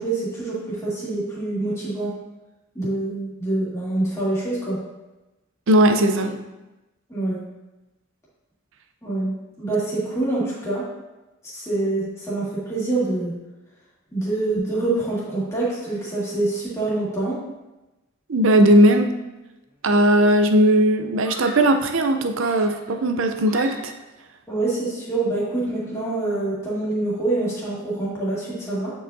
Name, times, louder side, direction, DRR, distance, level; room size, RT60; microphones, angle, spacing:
voice 1, 0.0-2.1 2.8-4.8 7.1-7.4 9.0-9.3 9.6-10.8 11.5-13.3 14.1-17.4 24.5-28.9, right 2 dB, 15° left, -8 dB, 2.1 m, -25 dB
voice 2, 5.7-6.4 18.3-19.1 19.8-23.9, right 1 dB, 65° right, 6 dB, 0.5 m, -18 dB
Screaming, 19.7-20.1 21.2-21.9 22.4-24.1, equal, 10° right, 1.6 m, -39 dB
8.7 x 4.8 x 2.7 m, 1.0 s
head